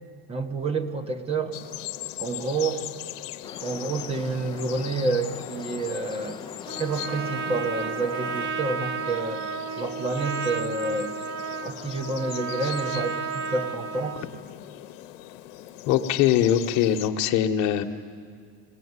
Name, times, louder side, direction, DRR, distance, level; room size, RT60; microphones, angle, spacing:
voice 1, 0.3-1.6 2.2-2.9 3.6-6.4 6.8-9.4 9.8-11.1 11.6-14.2, right 3 dB, 15° right, 8 dB, 1.1 m, -29 dB
sound 1, 1.5-17.1, left 15 dB, 80° left, 1.1 m, -40 dB
sound 2, 3.4-8.5, left 6 dB, 15° left, 0.6 m, -42 dB
Trumpet, 6.7-14.3, right 5 dB, 60° right, 1.0 m, -32 dB
voice 2, 15.9-17.8, left 10 dB, 50° left, 5 dB, 1.3 m, -22 dB
20.5 x 16.5 x 9.7 m, 2.1 s
cardioid pair, 160°, 37 cm